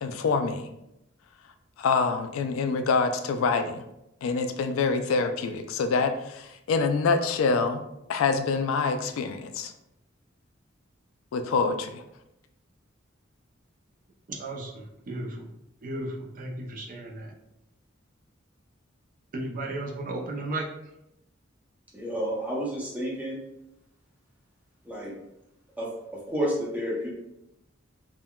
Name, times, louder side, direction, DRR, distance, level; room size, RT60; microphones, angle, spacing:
voice 1, 0.0-0.7 1.8-3.8 4.2-7.8 8.1-9.7 11.3-12.0, left 4 dB, 85° left, 7 dB, 0.3 m, -26 dB
voice 2, 14.3-15.5 15.8-17.3 19.3-20.6, right 2 dB, 45° right, 0 dB, 0.4 m, -34 dB
voice 3, 21.9-23.4 24.8-25.1 25.8-27.1, equal, 10° right, -5 dB, 0.7 m, -30 dB
3.6 x 2.1 x 2.2 m, 0.85 s
head